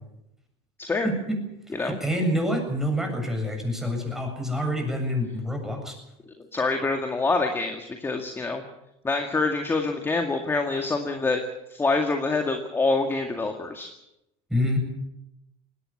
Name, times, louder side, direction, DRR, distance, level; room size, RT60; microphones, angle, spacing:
voice 1, 1.0-1.4 1.8-5.9 14.5-14.8, equal, 5° right, 3 dB, 7.5 m, -27 dB
voice 2, 6.5-8.6 9.0-11.4 11.7-13.9, left 3 dB, 15° left, 4 dB, 2.0 m, -26 dB
20.5 x 17.5 x 8.7 m, 0.87 s
supercardioid pair, 125°, 15 cm